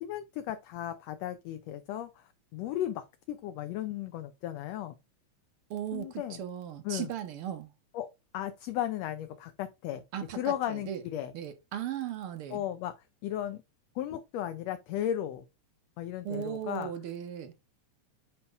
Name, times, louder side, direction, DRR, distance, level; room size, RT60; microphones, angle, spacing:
voice 1, 0.0-4.9 5.9-6.4 6.8-7.1 7.9-10.0 10.3-11.3 12.5-12.9 13.2-13.6 13.9-15.4 16.0-16.9, left 12 dB, 75° left, 1.6 m, -35 dB
voice 2, 5.7-7.7 10.1-11.0 11.3-12.6 16.2-17.5, right 10 dB, 65° right, 1.4 m, -37 dB
9.5 x 3.3 x 3.4 m
omnidirectional pair, 3.4 m